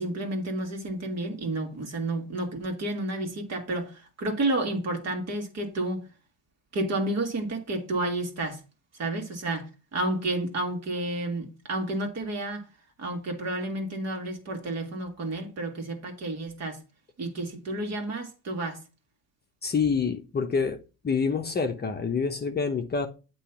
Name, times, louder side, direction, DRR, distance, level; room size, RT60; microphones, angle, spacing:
voice 1, 0.0-6.0 6.7-8.6 9.0-12.6 13.0-16.8 17.2-18.8, right 2 dB, 40° right, 2.0 m, -31 dB
voice 2, 19.6-20.8 21.0-23.1, left 5 dB, 25° left, 0.9 m, -27 dB
8.3 x 3.1 x 5.9 m
supercardioid pair, 85°, 39 cm